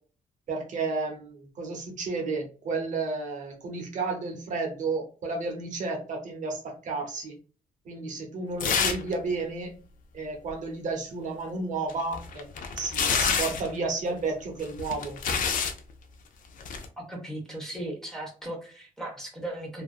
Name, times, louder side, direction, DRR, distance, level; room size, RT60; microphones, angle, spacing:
voice 1, 0.5-7.3 7.9-9.7 10.1-12.5 12.8-15.2, right 3 dB, 55° right, 2 dB, 0.7 m, -32 dB
sound 1, 8.6-9.1 9.4-9.5 11.9-13.7 14.6-15.8 16.6-16.9, left 6 dB, 65° left, 0.4 m, -27 dB
voice 2, 17.1-19.8, right 1 dB, 5° left, -3 dB, 0.7 m, -37 dB
2.5 x 2.4 x 2.3 m, 0.38 s
cardioid pair, 145°, 15 cm